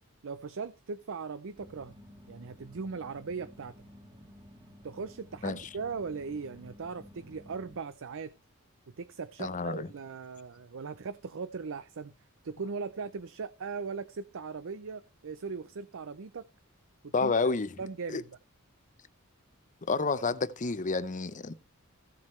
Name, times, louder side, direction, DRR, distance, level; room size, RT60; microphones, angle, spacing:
voice 1, 0.2-1.9 2.3-3.7 4.8-8.3 9.0-12.1 12.4-16.5 17.0-17.3 17.8-18.3, right 5 dB, 60° right, 0.6 m, -39 dB
sound 1, 1.5-7.8, left 1 dB, 20° right, 1.9 m, -53 dB
voice 2, 9.4-9.9 17.1-17.7 18.1-18.2 19.9-21.5, left 4 dB, 35° left, 0.7 m, -29 dB
15.0 x 7.5 x 3.1 m
head